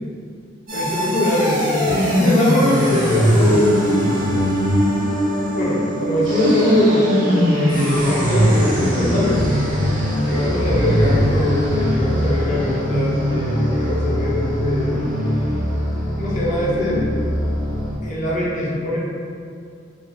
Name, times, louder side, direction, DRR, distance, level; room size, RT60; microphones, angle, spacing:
voice 1, 0.7-4.3 5.5-9.4 10.2-15.0 16.1-17.2 18.0-19.0, left 1 dB, 40° left, -6 dB, 0.6 m, -22 dB
sound 1, 0.7-18.0, equal, 45° right, 0.7 m, -20 dB
2.3 x 2.2 x 3.2 m, 2.3 s
head